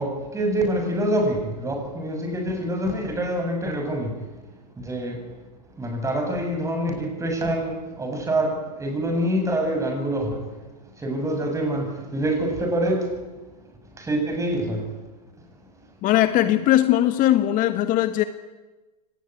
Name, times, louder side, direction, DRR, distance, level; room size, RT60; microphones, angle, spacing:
voice 1, 0.0-4.2 4.8-5.2 5.7-10.5 11.0-13.2 13.6-14.9, right 1 dB, 15° right, 7.5 m, -26 dB
voice 2, 16.0-18.2, left 13 dB, 40° left, 1.4 m, -19 dB
24.0 x 19.5 x 9.3 m
hypercardioid pair, 110°, 21 cm